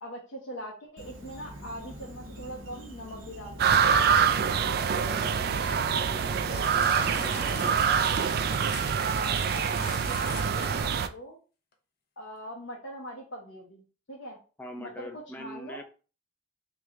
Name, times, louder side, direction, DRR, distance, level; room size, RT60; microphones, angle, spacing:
voice 1, 0.0-3.6 5.7-6.1 9.1-11.4 12.2-13.8 14.1-14.4 14.8-15.8, equal, 80° left, -3 dB, 0.9 m, -42 dB
Insect, 1.0-10.8, equal, 85° right, 1.0 m, -45 dB
sound 1, 3.6-11.1, right 7 dB, 50° right, 0.3 m, -25 dB
voice 2, 4.7-7.8 14.6-15.8, left 2 dB, 10° left, 4 dB, 0.5 m, -43 dB
sound 2, 6.5-11.0 11.7-11.8, left 5 dB, 50° left, 0.7 m, -43 dB
3.2 x 3.1 x 3.6 m, 0.36 s
head